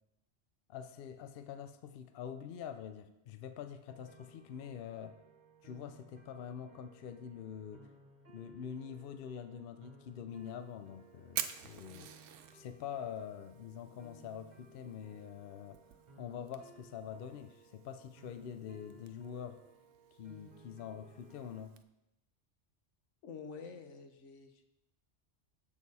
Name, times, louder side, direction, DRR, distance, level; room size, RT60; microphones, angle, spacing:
voice 1, 0.7-5.2 5.6-7.9 8.3-12.2 12.5-15.8 16.2-19.6 20.2-21.8, left 8 dB, 60° left, 10 dB, 0.7 m, -45 dB
sound 1, 3.9-21.6, right 3 dB, 40° right, 1.1 m, -61 dB
Fire, 10.3-21.8, right 10 dB, 90° right, 0.9 m, -49 dB
voice 2, 23.2-24.6, left 5 dB, 85° left, 6 dB, 1.1 m, -48 dB
7.3 x 6.5 x 4.1 m, 0.86 s
omnidirectional pair, 1.2 m